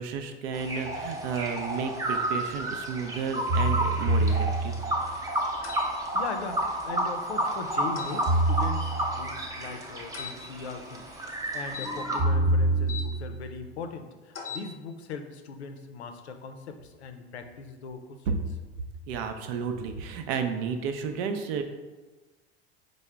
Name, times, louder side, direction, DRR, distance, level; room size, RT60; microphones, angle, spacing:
voice 1, 0.0-4.8 18.3-18.4 19.1-21.6, right 6 dB, 60° right, 6 dB, 0.5 m, -32 dB
sound 1, 0.5-12.2, right 1 dB, 10° right, 0.7 m, -31 dB
sound 2, 3.5-5.1 8.3-9.3 12.2-13.5, right 2 dB, 35° right, 1.0 m, -26 dB
sound 3, 5.6-5.9 8.0-8.2 10.1-10.4 11.7-13.1 14.3-14.7, left 4 dB, 40° left, 0.8 m, -39 dB
voice 2, 6.1-18.4, left 5 dB, 85° left, 7 dB, 0.5 m, -40 dB
4.5 x 2.1 x 3.3 m, 1.3 s
hypercardioid pair, 80°, 32 cm